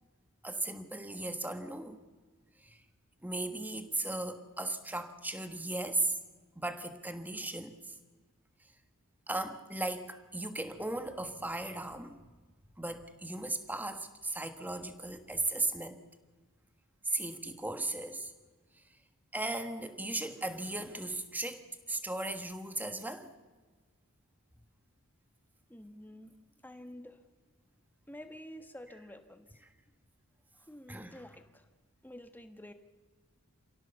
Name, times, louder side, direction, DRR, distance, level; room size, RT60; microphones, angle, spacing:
voice 1, 0.4-2.0 2.6-2.8 3.2-6.1 6.5-7.9 9.3-12.2 12.8-16.0 17.0-18.3 19.3-23.3 30.9-31.2, right 2 dB, 10° right, 8 dB, 1.4 m, -36 dB
voice 2, 25.7-26.3 26.6-27.2 28.1-29.7 30.6-31.7 32.0-32.7, left 1 dB, 10° left, 8 dB, 1.3 m, -49 dB
28.0 x 16.5 x 7.0 m, 1.4 s
head